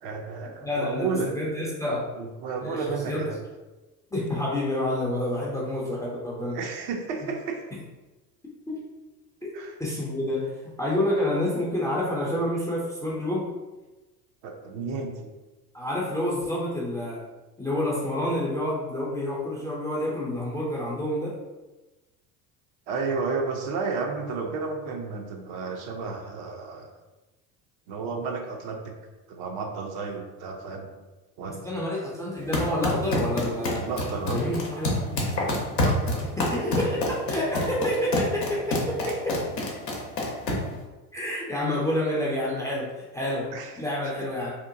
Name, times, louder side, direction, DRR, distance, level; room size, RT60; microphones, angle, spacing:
voice 1, 0.0-1.3 2.2-3.4 6.5-7.6 9.5-9.7 14.4-15.3 22.9-26.9 27.9-28.9 29.3-30.9 31.4-31.7 31.9-32.0 33.7-34.4 35.4-36.3 39.1-39.2 43.5-43.7, right 4 dB, 50° right, 2 dB, 0.6 m, -32 dB
voice 2, 0.6-2.1 2.6-3.4 4.1-6.6 7.7-7.8 8.7-8.8 9.4-13.5 15.7-17.3 17.6-21.4 31.6-33.9 34.2-35.2 35.8-35.9 36.4-39.4 41.1-44.5, left 1 dB, 5° left, -5 dB, 0.4 m, -28 dB
sound 1, 32.4-40.8, left 1 dB, 90° left, 0.7 m, -28 dB
2.8 x 2.1 x 2.5 m, 1.1 s
hypercardioid pair, 70°, 49 cm